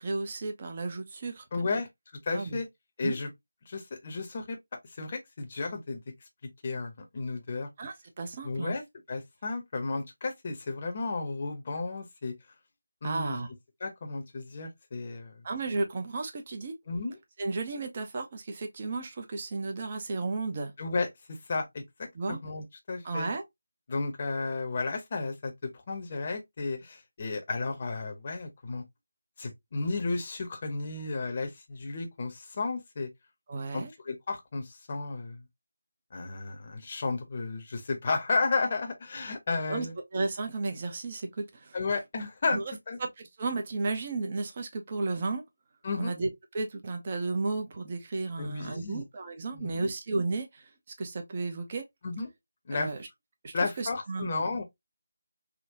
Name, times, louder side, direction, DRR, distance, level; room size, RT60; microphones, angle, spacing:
voice 1, 0.0-1.4 1.7-1.8 2.3-2.6 3.0-3.2 7.8-8.8 13.0-13.5 15.4-16.7 17.4-20.7 22.1-22.4 23.0-23.4 33.5-33.9 39.7-39.9 40.1-41.8 42.5-42.6 43.0-45.4 46.0-46.3 46.5-50.7 51.0-51.8 52.7-53.0 53.4-54.5, right 3 dB, 35° right, 0.7 m, -33 dB
voice 2, 1.5-1.9 2.2-2.7 3.0-3.3 3.7-4.6 4.9-6.0 6.6-7.7 8.4-8.8 9.1-12.3 13.0-13.4 13.8-15.4 16.9-17.2 20.8-23.3 23.9-28.8 29.4-33.1 33.7-35.4 36.1-39.9 41.7-43.0 45.8-46.1 48.4-49.0 49.5-49.9 52.0-52.3 52.7-52.9 53.5-54.6, left 3 dB, 35° left, 0.8 m, -33 dB
3.7 x 2.2 x 2.7 m
figure-of-eight pair, 165°, 0 cm